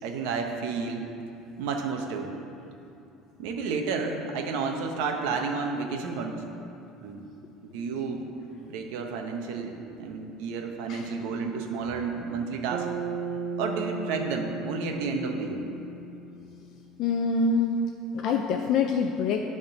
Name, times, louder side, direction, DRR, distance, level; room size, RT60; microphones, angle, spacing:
voice 1, 0.0-1.0 1.6-2.3 3.4-6.4 7.0-7.2 7.6-8.3 8.6-12.9 13.6-15.6, right 4 dB, 80° right, 3 dB, 0.8 m, -31 dB
Bass guitar, 12.7-17.1, right 4 dB, 60° right, 0.3 m, -36 dB
voice 2, 17.0-19.4, left 4 dB, 50° left, 3 dB, 0.4 m, -26 dB
8.8 x 3.6 x 6.6 m, 2.8 s
cardioid pair, 160°, 0 cm